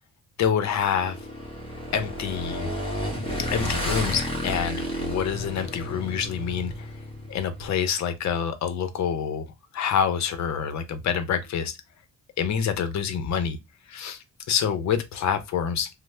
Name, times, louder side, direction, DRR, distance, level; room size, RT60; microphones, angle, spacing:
voice 1, 0.4-1.2 1.9-2.7 3.5-9.5 9.7-11.8 12.4-13.6 13.9-15.9, left 7 dB, 65° left, 0.7 m, -27 dB
Motorcycle / Engine, 0.7-7.7, equal, 20° left, 1.2 m, -32 dB
3.1 x 2.1 x 3.1 m
cardioid pair, 90°, 30 cm